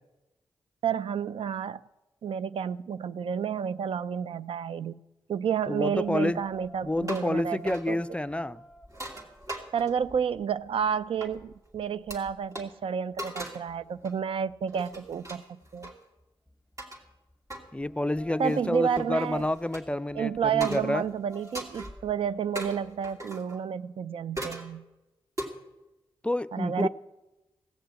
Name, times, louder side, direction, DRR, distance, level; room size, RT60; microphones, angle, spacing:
voice 1, 0.8-1.8 2.2-5.0 5.3-8.0 9.7-15.9 18.4-19.5 20.1-24.8 26.5-26.9, right 7 dB, 70° right, 0.4 m, -30 dB
voice 2, 5.7-6.4 6.8-8.6 17.7-21.0 26.2-26.9, left 1 dB, 10° left, 0.4 m, -29 dB
sound 1, 5.9-23.0, left 1 dB, 5° right, 2.0 m, -53 dB
sound 2, 7.0-7.4 7.7-7.9 8.9-10.1 11.2-11.3 12.1-12.2 12.5-12.7 13.2-13.7 14.0-14.2 14.7-16.0 16.8-17.0 17.5-17.7 18.4-19.8 20.6-21.0 21.3-21.9 22.6-23.6 24.4-24.7 25.4-25.5, right 1 dB, 35° right, 2.5 m, -39 dB
16.5 x 6.7 x 7.9 m
cardioid pair, 70°, 10 cm